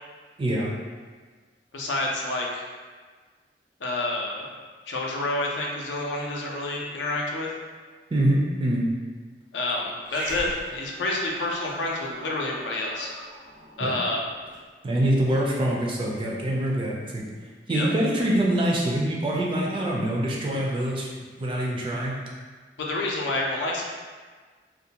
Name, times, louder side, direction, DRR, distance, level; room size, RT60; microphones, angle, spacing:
voice 1, 0.4-0.7 8.1-8.9 13.8-14.0 14.8-17.2 17.7-21.1 21.4-22.2, right 1 dB, 30° right, -3 dB, 0.3 m, -24 dB
voice 2, 1.7-2.6 3.8-4.5 4.9-7.5 9.5-13.1 13.8-14.2 17.7-17.9 22.8-23.8, left 2 dB, 85° left, -2 dB, 0.4 m, -28 dB
Growling, 10.0-14.6, right 1 dB, 80° right, 0.8 m, -41 dB
2.4 x 2.1 x 2.8 m, 1.5 s
head